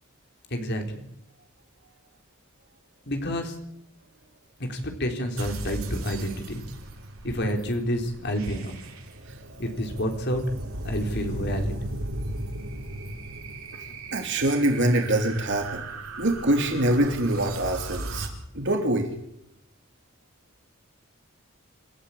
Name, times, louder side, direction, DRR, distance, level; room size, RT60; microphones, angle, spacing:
voice 1, 0.5-1.0 3.1-3.5 4.7-6.6 7.2-8.7 9.6-10.4 10.8-11.7, equal, 55° left, 4 dB, 3.9 m, -29 dB
sound 1, 5.4-18.3, right 1 dB, 90° right, 5.2 m, -36 dB
voice 2, 14.1-15.8 16.2-18.3 18.5-19.1, right 1 dB, 60° right, 3 dB, 3.0 m, -24 dB
28.0 x 14.5 x 8.6 m, 0.78 s
head